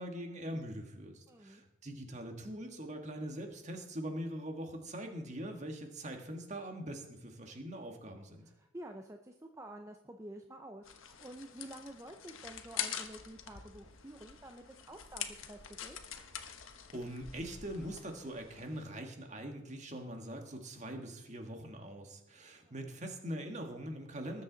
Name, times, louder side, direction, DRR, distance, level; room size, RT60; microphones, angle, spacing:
voice 1, 0.0-8.5 16.9-24.4, right 1 dB, 35° right, 4 dB, 1.7 m, -42 dB
voice 2, 1.3-1.6 8.4-16.0 22.6-22.7, right 1 dB, 15° right, 4 dB, 0.6 m, -50 dB
sound 1, 10.8-18.8, left 9 dB, 85° left, 1.2 m, -45 dB
20.0 x 7.7 x 4.0 m, 1.0 s
head